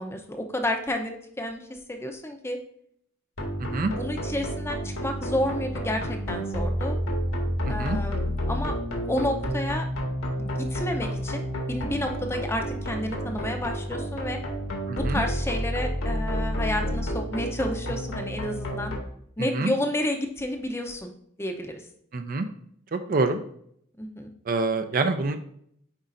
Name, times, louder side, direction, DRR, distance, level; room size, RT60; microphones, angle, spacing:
voice 1, 0.0-1.6 1.9-2.6 4.0-7.0 7.7-8.7 9.1-9.9 10.4-11.4 11.7-14.4 14.9-18.9 19.4-21.1 21.4-21.7 24.0-24.3, left 1 dB, 10° left, 4 dB, 0.6 m, -30 dB
sound 1, 3.4-19.0, equal, 75° left, 1.6 m, -30 dB
voice 2, 3.6-3.9 7.6-8.0 14.9-15.2 19.4-19.7 22.1-22.5 22.9-23.4 24.5-25.4, right 3 dB, 40° right, 8 dB, 0.4 m, -26 dB
8.1 x 4.9 x 2.6 m, 0.68 s
head